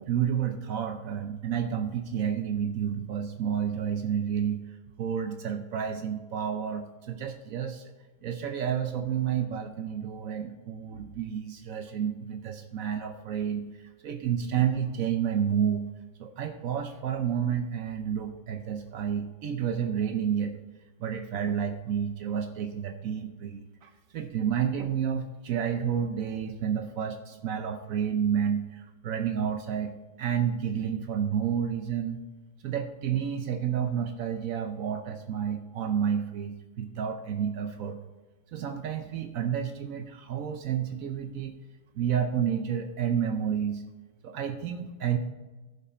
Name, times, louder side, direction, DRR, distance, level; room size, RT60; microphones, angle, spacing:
voice 1, 0.0-4.6 5.0-7.8 8.2-13.7 14.0-15.8 16.2-20.5 21.0-32.2 32.6-38.0 38.5-41.5 41.9-43.8 44.2-45.2, right 8 dB, 85° right, 6 dB, 0.7 m, -30 dB
16.0 x 5.5 x 4.3 m, 1.2 s
omnidirectional pair, 2.3 m